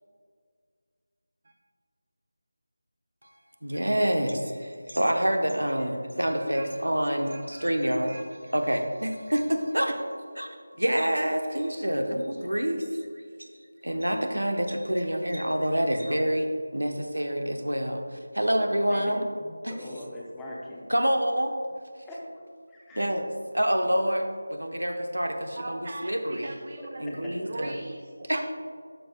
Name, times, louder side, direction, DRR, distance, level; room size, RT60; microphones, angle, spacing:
voice 1, 3.6-8.2 8.5-10.0 10.3-10.5 10.8-12.9 13.4-13.5 13.8-19.3 19.6-19.7 20.9-21.6 22.9-26.5 27.0-27.8 28.3-28.4, equal, 85° right, 5 dB, 0.9 m, -27 dB
voice 2, 6.3-6.7 7.2-7.7 8.0-8.2 25.6-28.4, right 2 dB, 45° right, 4 dB, 0.5 m, -41 dB
voice 3, 19.4-20.8 22.0-22.2 22.7-23.1 27.2-27.3, left 1 dB, 5° left, -5 dB, 0.8 m, -41 dB
12.0 x 6.5 x 2.2 m, 2.1 s
figure-of-eight pair, 165°, 0 cm